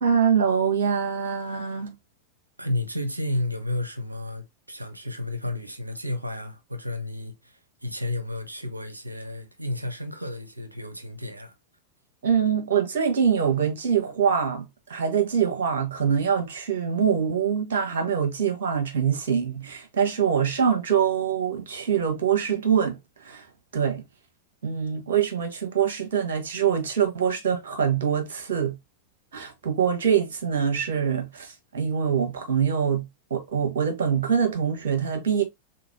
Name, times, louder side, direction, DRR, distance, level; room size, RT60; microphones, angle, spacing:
voice 1, 0.0-1.9 12.2-23.0 23.2-23.5 23.7-24.0 24.6-28.7 29.3-33.0 33.3-35.4, right 7 dB, 60° right, 1.4 m, -24 dB
voice 2, 2.6-11.5, left 1 dB, 85° right, 0.7 m, -32 dB
3.8 x 3.7 x 2.6 m
figure-of-eight pair, 90°, 0 cm